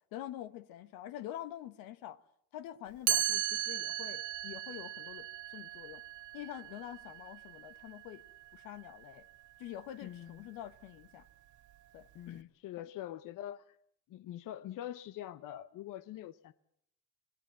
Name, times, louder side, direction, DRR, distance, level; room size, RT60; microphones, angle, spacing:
voice 1, 0.1-2.2 2.5-6.0 6.3-8.2 8.5-9.3 9.6-11.3 11.9-12.5 12.8-12.9, left 12 dB, 90° left, 1.2 m, -46 dB
Chime, 3.1-8.9, right 12 dB, 60° right, 1.2 m, -37 dB
voice 2, 10.0-10.5 12.1-13.8 14.1-16.5, left 12 dB, 65° left, 0.9 m, -44 dB
27.0 x 18.5 x 7.5 m
cardioid pair, 95°, 35 cm